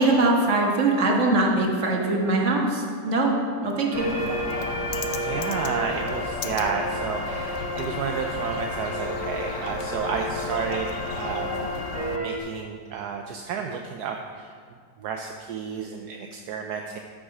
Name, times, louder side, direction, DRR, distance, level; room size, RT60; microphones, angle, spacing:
voice 1, 0.0-3.4 3.6-4.1, right 2 dB, 45° right, 0 dB, 1.6 m, -22 dB
Bird, 3.9-12.2, left 5 dB, 85° left, 0.6 m, -34 dB
sound 1, 3.9-12.4, equal, 15° right, 0.5 m, -32 dB
voice 2, 5.2-11.7 12.1-14.5 15.0-17.0, right 6 dB, 70° right, 3 dB, 1.0 m, -31 dB
13.0 x 6.3 x 4.9 m, 2.1 s
omnidirectional pair, 2.0 m